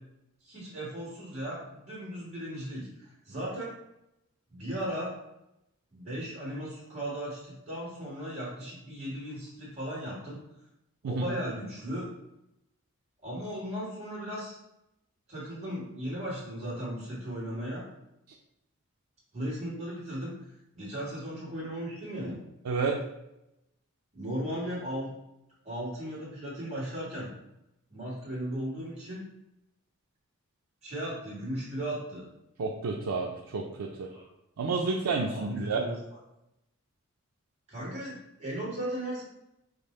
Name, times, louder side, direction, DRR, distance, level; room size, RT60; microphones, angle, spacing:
voice 1, 0.4-3.7 4.5-5.2 5.9-10.4 11.0-12.1 13.2-14.6 15.3-17.8 19.3-22.4 24.1-25.1 25.6-27.3 27.9-29.2 30.8-32.3 34.1-34.3 35.3-36.0 37.7-39.2, right 1 dB, 30° right, -7 dB, 1.5 m, -36 dB
voice 2, 32.6-34.1 34.6-35.8, right 4 dB, 85° right, 0 dB, 0.4 m, -30 dB
5.1 x 2.0 x 4.2 m, 0.87 s
head